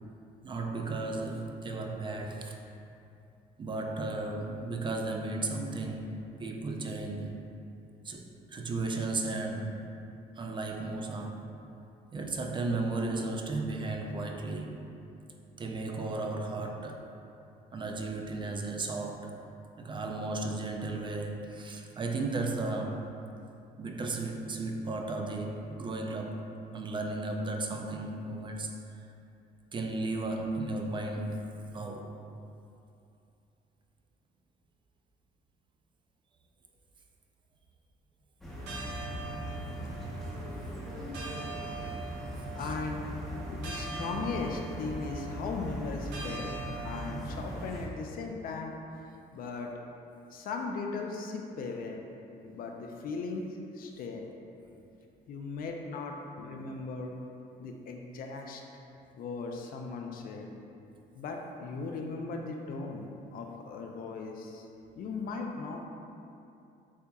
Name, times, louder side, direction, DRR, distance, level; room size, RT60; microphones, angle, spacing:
voice 1, 0.4-2.6 3.6-7.4 8.0-9.8 10.4-11.4 12.1-14.9 15.5-17.1 17.7-19.4 19.8-23.1 23.8-26.5 26.7-29.0 29.7-32.2 42.6-42.7, right 2 dB, 30° right, 2 dB, 0.4 m, -35 dB
sound 1, 38.4-47.9, equal, ahead, 0.8 m, -39 dB
sound 2, 38.5-47.5, right 3 dB, 85° right, 0.9 m, -44 dB
voice 2, 42.6-43.1 43.3-46.5 46.8-48.7 49.0-49.7 50.3-52.0 52.4-53.5 53.7-54.2 55.3-57.2 57.6-58.6 59.1-60.5 61.1-64.7 64.9-65.8, left 4 dB, 60° left, 2 dB, 0.5 m, -38 dB
8.1 x 2.8 x 2.3 m, 2.6 s
cardioid pair, 110°, 17 cm